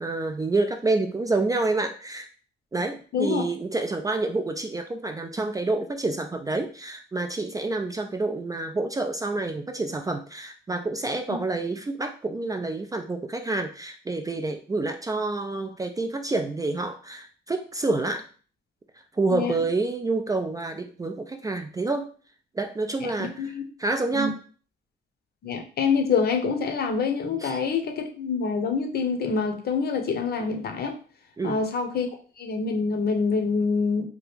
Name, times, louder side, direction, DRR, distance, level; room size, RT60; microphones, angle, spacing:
voice 1, 0.0-2.3 2.7-18.3 19.1-22.1 22.5-23.5 23.8-24.4 27.4-27.6 31.4-31.6, right 3 dB, 20° right, 6 dB, 0.3 m, -28 dB
voice 2, 3.1-3.4 11.3-11.4 19.3-19.5 23.2-23.6 24.1-24.3 25.4-31.0 31.4-32.1 32.4-34.1, left 5 dB, 55° left, 4 dB, 0.7 m, -26 dB
2.8 x 2.4 x 3.3 m, 0.40 s
cardioid pair, 90°, 20 cm